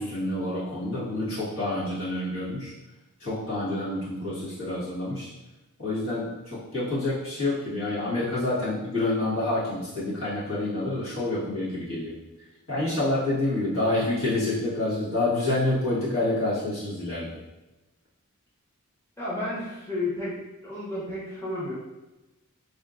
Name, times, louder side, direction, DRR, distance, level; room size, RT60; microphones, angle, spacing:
voice 1, 0.0-2.7 3.2-5.3 5.8-12.1 12.7-17.3, left 2 dB, 65° left, -9 dB, 1.5 m, -28 dB
voice 2, 19.2-20.4 20.6-21.7, left 2 dB, 10° left, -8 dB, 0.9 m, -32 dB
4.2 x 2.7 x 2.5 m, 1.0 s
head